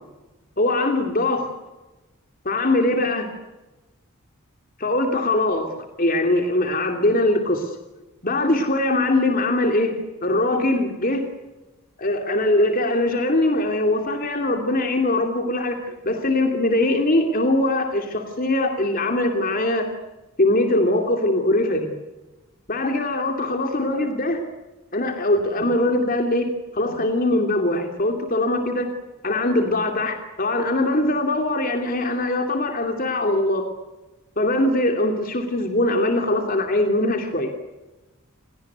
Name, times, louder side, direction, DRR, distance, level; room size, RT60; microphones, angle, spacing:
voice 1, 0.6-1.5 2.4-3.3 4.8-5.7 6.0-7.7 8.2-9.9 10.2-11.2 12.0-19.9 20.4-21.9 22.7-24.4 24.9-26.5 26.7-28.9 29.2-33.7 34.4-37.5, left 1 dB, 40° left, 4 dB, 2.8 m, -22 dB
29.0 x 18.5 x 9.4 m, 1.1 s
head